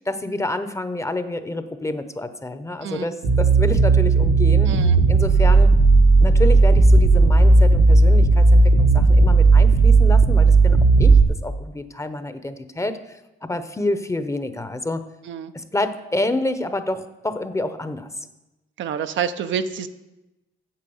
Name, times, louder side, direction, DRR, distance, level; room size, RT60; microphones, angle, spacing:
voice 1, 0.1-4.7 5.1-5.7 6.2-11.1 11.4-15.0 15.5-18.1, left 2 dB, 15° left, 10 dB, 0.8 m, -28 dB
sound 1, 3.2-11.2, right 3 dB, 85° right, 1.6 m, -14 dB
voice 2, 4.7-5.0 15.3-15.5 18.8-19.9, right 7 dB, 70° right, 9 dB, 0.7 m, -27 dB
8.7 x 7.2 x 7.1 m, 1.0 s
cardioid pair, 90°, 20 cm